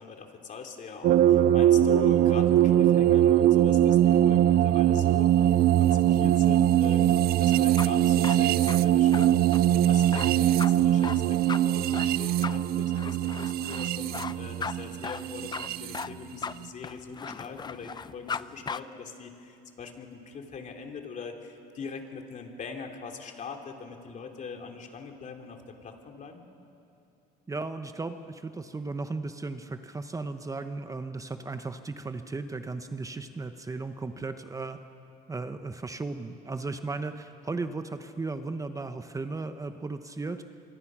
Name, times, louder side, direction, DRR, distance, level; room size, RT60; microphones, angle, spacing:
voice 1, 0.0-9.3 9.9-26.4, left 5 dB, 45° left, 4 dB, 2.9 m, -42 dB
sound 1, 1.0-16.0, right 11 dB, 65° right, 0.5 m, -22 dB
sound 2, 7.5-18.4 18.7-18.8, left 5 dB, 25° left, 0.6 m, -37 dB
voice 2, 27.5-34.8 35.3-40.4, right 3 dB, 20° right, 8 dB, 1.0 m, -36 dB
25.0 x 24.5 x 6.2 m, 2.7 s
cardioid pair, 110°, 17 cm